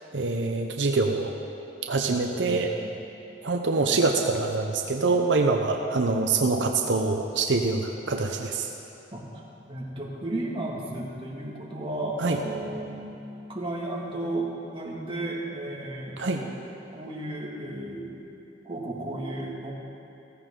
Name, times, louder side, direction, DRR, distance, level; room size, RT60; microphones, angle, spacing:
voice 1, 0.1-1.3 1.9-2.7 3.4-8.7 12.2-12.4 16.2-16.4, right 3 dB, 85° right, 3 dB, 0.8 m, -25 dB
voice 2, 2.5-2.9 9.1-9.4 9.7-16.6 16.9-18.2 18.6-19.7, right 1 dB, 30° right, -4 dB, 2.2 m, -34 dB
15.5 x 14.5 x 3.8 m, 2.8 s
head